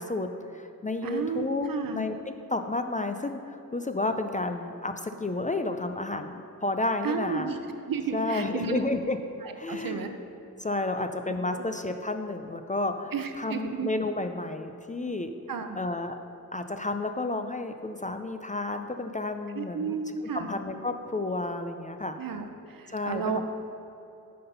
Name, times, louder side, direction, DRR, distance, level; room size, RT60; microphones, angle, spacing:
voice 1, 0.0-2.1 2.5-7.5 8.1-9.2 9.5-10.1 10.6-15.3 15.8-16.2 16.5-20.0 20.3-22.2 22.9-23.4, left 2 dB, 25° left, 7 dB, 0.3 m, -31 dB
voice 2, 1.0-2.0 7.0-7.6 7.9-8.8 9.4-10.1 11.5-11.7 13.1-13.9 15.5-15.8 19.5-20.5 22.2-23.4, right 5 dB, 70° right, 7 dB, 0.8 m, -32 dB
9.4 x 5.8 x 5.5 m, 2.9 s
wide cardioid pair, 130°, 35 cm